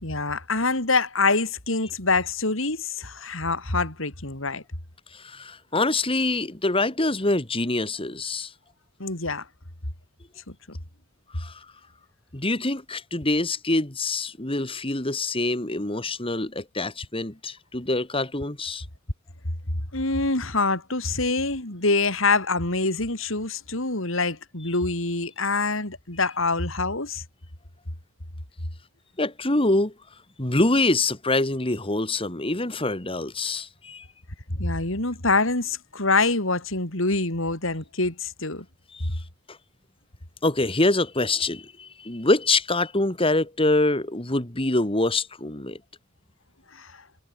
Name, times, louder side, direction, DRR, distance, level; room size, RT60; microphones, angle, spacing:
voice 1, 0.0-4.6 9.0-9.5 10.5-10.8 19.9-27.2 34.5-38.6 46.7-47.0, left 3 dB, 70° left, 4.7 m, -25 dB
voice 2, 5.1-8.5 11.3-11.7 12.3-18.8 29.2-29.9 30.4-34.1 38.9-39.1 39.5-39.6 40.4-45.8, left 2 dB, 25° left, 2.6 m, -25 dB
head